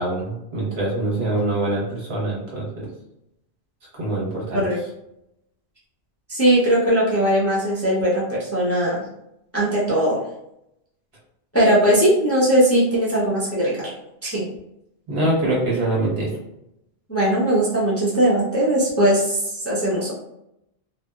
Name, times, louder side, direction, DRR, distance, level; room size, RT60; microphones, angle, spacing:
voice 1, 0.0-2.9 4.0-4.6 15.1-16.3, right 2 dB, 70° right, -6 dB, 1.4 m, -24 dB
voice 2, 6.3-9.1 9.5-10.2 11.5-13.9 14.2-14.4 17.1-20.1, right 1 dB, 15° left, -6 dB, 0.6 m, -19 dB
2.7 x 2.4 x 2.3 m, 0.81 s
omnidirectional pair, 1.1 m